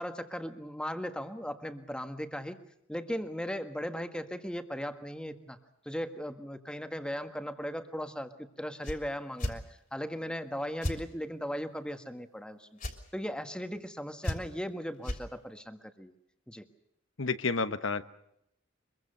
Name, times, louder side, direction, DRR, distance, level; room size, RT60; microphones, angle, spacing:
voice 1, 0.0-2.6 2.9-5.6 5.8-9.6 9.9-12.7 13.1-16.1 16.5-16.6, equal, 5° left, 8 dB, 1.5 m, -37 dB
sound 1, 8.8-9.0 9.4-9.6 10.8-11.0 12.8-13.0 14.2-14.6 15.0-15.2, equal, 45° left, 3.2 m, -33 dB
voice 2, 17.2-18.0, left 4 dB, 75° left, 11 dB, 1.2 m, -30 dB
24.5 x 23.0 x 6.7 m, 0.77 s
head